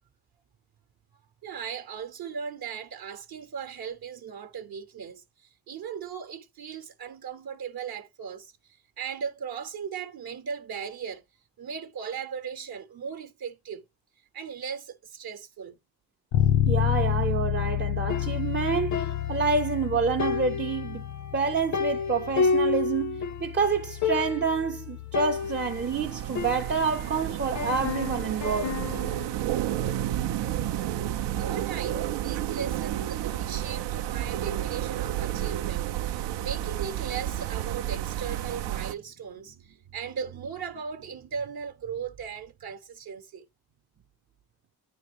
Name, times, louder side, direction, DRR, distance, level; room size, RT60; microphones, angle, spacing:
voice 1, 1.4-11.2 11.6-13.9 14.3-15.8 31.3-43.5, right 7 dB, 60° right, 0.8 m, -38 dB
Bass guitar, 16.3-26.1, left 11 dB, 90° left, 0.8 m, -30 dB
voice 2, 16.7-21.0 21.3-28.7 31.9-32.1, right 5 dB, 30° right, 0.4 m, -28 dB
sound 1, 18.1-19.9 20.2-23.5 23.8-23.9 24.0-24.6 25.1-27.1 27.6-29.2, left 5 dB, 45° left, 0.6 m, -31 dB
sound 2, 25.4-38.9, right 12 dB, 85° right, 0.5 m, -31 dB
8.9 x 3.5 x 3.3 m
cardioid pair, 75°, 41 cm